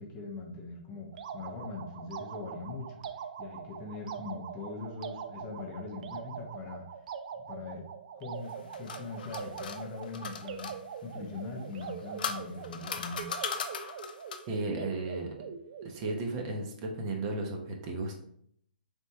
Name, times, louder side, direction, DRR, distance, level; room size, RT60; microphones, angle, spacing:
voice 1, 0.0-3.0 3.4-6.9 7.5-7.9 8.1-10.8 11.0-13.3, left 3 dB, 25° left, 1 dB, 0.7 m, -41 dB
sound 1, 1.1-16.3, right 7 dB, 50° right, 0.3 m, -43 dB
sound 2, 8.4-10.8 11.7-14.6, left 6 dB, 60° left, 0.5 m, -38 dB
voice 2, 14.5-15.3 15.8-18.1, right 2 dB, 35° right, 2 dB, 0.8 m, -34 dB
4.2 x 3.5 x 2.8 m, 0.68 s
hypercardioid pair, 145°, 5 cm